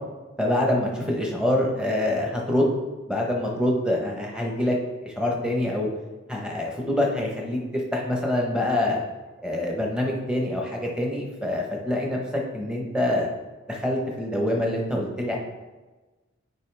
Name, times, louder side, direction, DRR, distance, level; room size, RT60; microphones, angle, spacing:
voice 1, 0.4-2.7 3.1-4.7 5.0-5.9 6.3-9.0 9.4-13.3 13.7-15.4, left 1 dB, 5° right, -1 dB, 1.0 m, -25 dB
9.1 x 4.7 x 3.4 m, 1.2 s
head